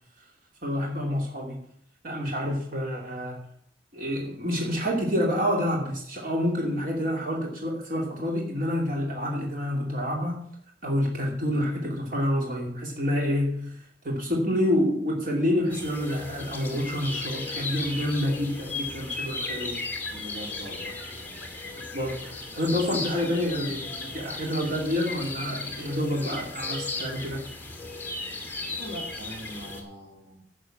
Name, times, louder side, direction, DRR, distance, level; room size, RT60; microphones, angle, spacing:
voice 1, 0.6-1.6 2.0-3.5 3.9-10.4 10.8-19.9 21.8-27.5, equal, 50° right, 2.6 m, -28 dB
sound 1, 15.7-29.8, left 3 dB, 10° left, 2.2 m, -36 dB
voice 2, 20.1-21.7 28.6-30.4, equal, 80° right, 3.0 m, -42 dB
11.5 x 6.7 x 7.4 m
head